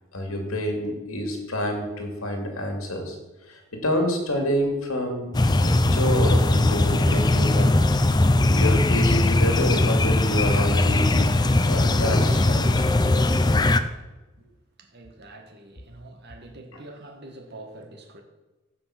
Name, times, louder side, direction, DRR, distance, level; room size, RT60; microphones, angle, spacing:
voice 1, 0.1-3.2 3.4-5.3 5.6-7.8 8.5-11.1 11.6-12.8 16.7-16.8, equal, 90° left, 2.6 m, -28 dB
sound 1, 5.3-13.8, left 2 dB, 20° left, 0.5 m, -20 dB
voice 2, 14.8-18.2, right 2 dB, 50° right, 1.6 m, -45 dB
15.0 x 5.8 x 5.9 m
head